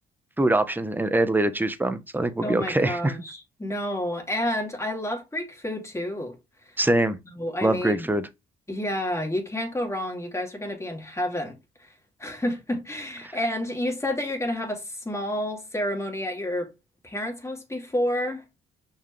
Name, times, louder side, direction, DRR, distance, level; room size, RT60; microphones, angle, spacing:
voice 1, 0.4-3.1 6.8-7.2 7.6-8.3, right 1 dB, 10° right, 1.0 m, -23 dB
voice 2, 2.4-6.3 7.4-8.1 8.7-11.9 12.2-16.7 17.0-18.4, left 1 dB, 15° left, 2.7 m, -30 dB
6.0 x 4.8 x 3.3 m
cardioid pair, 90°, 20 cm